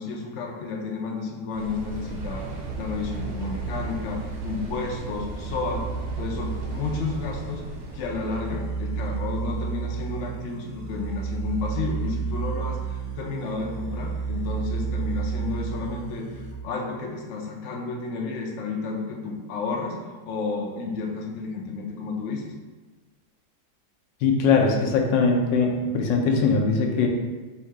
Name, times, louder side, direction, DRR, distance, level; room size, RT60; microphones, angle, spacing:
voice 1, 0.0-5.8 6.2-7.6 7.9-22.5, left 4 dB, 65° left, 0 dB, 0.7 m, -32 dB
sound 1, 1.5-16.5, right 6 dB, 60° right, 0.8 m, -33 dB
sound 2, 1.6-9.0, right 2 dB, 80° right, 1.4 m, -37 dB
voice 2, 24.2-27.1, left 4 dB, 85° left, 1 dB, 1.3 m, -21 dB
3.6 x 2.7 x 4.6 m, 1.3 s
omnidirectional pair, 1.9 m